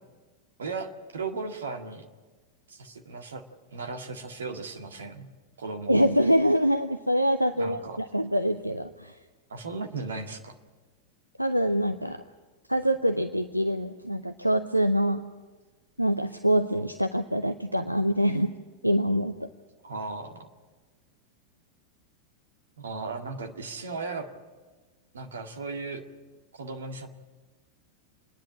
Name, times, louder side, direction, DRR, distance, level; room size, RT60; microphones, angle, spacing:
voice 1, 0.6-2.1 2.7-3.4 3.7-5.3 5.6-6.0 7.6-8.0 9.5-10.5 19.8-20.5 22.8-24.3 25.1-26.0 26.5-27.1, right 4 dB, 70° right, 4 dB, 1.9 m, -36 dB
voice 2, 5.9-9.2 11.4-12.2 12.7-15.2 16.0-18.5 18.8-19.5, equal, 90° right, 8 dB, 0.6 m, -25 dB
27.5 x 10.5 x 10.0 m, 1.3 s
figure-of-eight pair, 90°, 0 cm